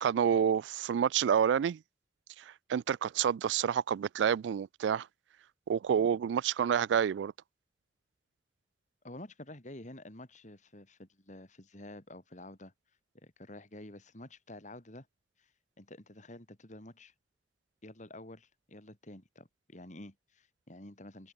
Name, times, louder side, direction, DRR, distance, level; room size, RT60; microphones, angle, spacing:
voice 1, 0.0-1.8 2.4-5.1 5.7-7.3, right 8 dB, 85° right, 0.3 m, -28 dB
voice 2, 9.0-12.7 13.2-15.1 15.4-15.5 15.8-17.1 17.8-21.3, left 1 dB, 45° left, 3.3 m, -49 dB
head